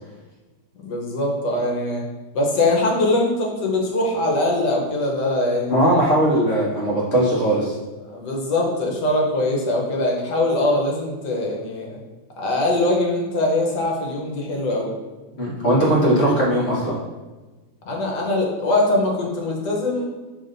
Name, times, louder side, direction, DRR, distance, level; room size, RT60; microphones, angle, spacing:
voice 1, 0.8-2.1 2.3-6.0 8.0-12.0 12.4-14.9 17.9-20.1, left 2 dB, 75° left, -1 dB, 1.6 m, -22 dB
voice 2, 5.7-7.8 15.4-17.0, right 1 dB, 40° left, -6 dB, 1.4 m, -19 dB
5.9 x 3.4 x 2.6 m, 1.2 s
omnidirectional pair, 1.8 m